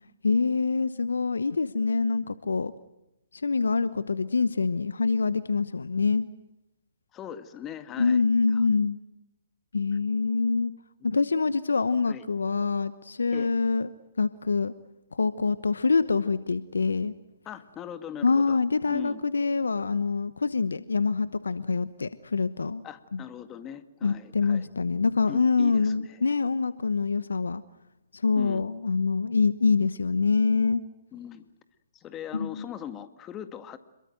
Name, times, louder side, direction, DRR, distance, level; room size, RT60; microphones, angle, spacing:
voice 1, 0.2-2.7 3.3-6.3 8.0-9.0 9.7-10.7 11.0-13.9 14.2-14.7 15.1-17.1 18.2-22.8 23.1-23.2 24.0-27.6 28.1-30.8 32.3-32.7, left 4 dB, 80° left, 16 dB, 1.0 m, -25 dB
voice 2, 7.1-8.2 8.5-8.6 11.0-11.1 12.1-12.3 13.3-13.5 17.5-18.6 18.9-19.2 22.8-24.7 25.3-26.2 28.3-28.6 31.1-31.5 31.9-33.8, left 10 dB, 20° left, 11 dB, 1.9 m, -40 dB
27.5 x 22.5 x 7.9 m, 0.92 s
figure-of-eight pair, 130°, 0 cm